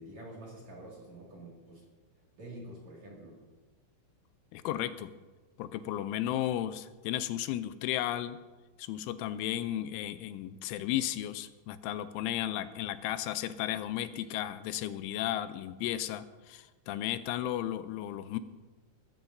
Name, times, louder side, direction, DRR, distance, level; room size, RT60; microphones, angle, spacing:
voice 1, 0.0-1.8 2.4-3.4, right 1 dB, 45° right, -3 dB, 2.8 m, -47 dB
voice 2, 4.5-5.1 5.6-8.4 8.8-18.4, left 12 dB, 85° left, 12 dB, 3.0 m, -34 dB
21.0 x 13.0 x 2.7 m, 1.3 s
omnidirectional pair, 5.5 m